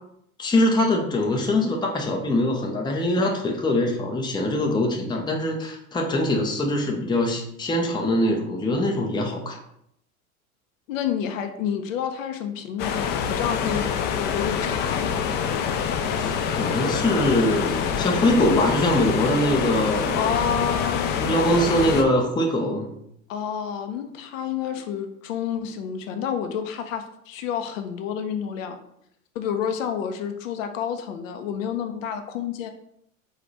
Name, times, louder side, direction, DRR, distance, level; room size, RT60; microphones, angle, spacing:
voice 1, 0.4-9.6 16.2-20.4 21.2-22.9, left 1 dB, 10° left, 1 dB, 0.7 m, -23 dB
voice 2, 10.9-13.9 14.1-15.2 20.1-21.3 23.3-28.8 29.3-32.7, left 8 dB, 60° left, 6 dB, 0.7 m, -29 dB
sound 1, 12.8-22.0, left 7 dB, 25° left, 0.3 m, -26 dB
4.7 x 2.4 x 4.0 m, 0.74 s
hypercardioid pair, 95°, 43 cm